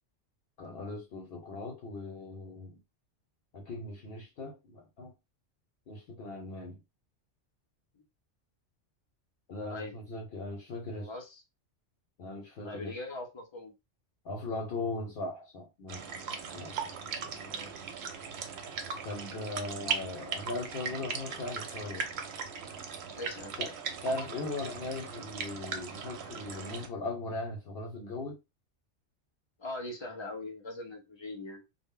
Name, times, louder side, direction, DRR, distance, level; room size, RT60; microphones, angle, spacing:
voice 1, 0.6-2.8 3.5-5.1 5.9-6.8 9.5-11.1 12.2-13.0 14.2-16.1 16.5-16.8 19.0-22.1 23.6-23.7 24.0-28.4, left 2 dB, 60° left, 0.8 m, -39 dB
voice 2, 11.0-11.4 12.6-13.7 17.4-17.7 23.2-23.5 29.6-31.6, left 2 dB, 40° left, 0.4 m, -41 dB
sound 1, 15.9-26.9, right 6 dB, 70° right, 0.8 m, -39 dB
2.0 x 2.0 x 3.6 m
omnidirectional pair, 1.2 m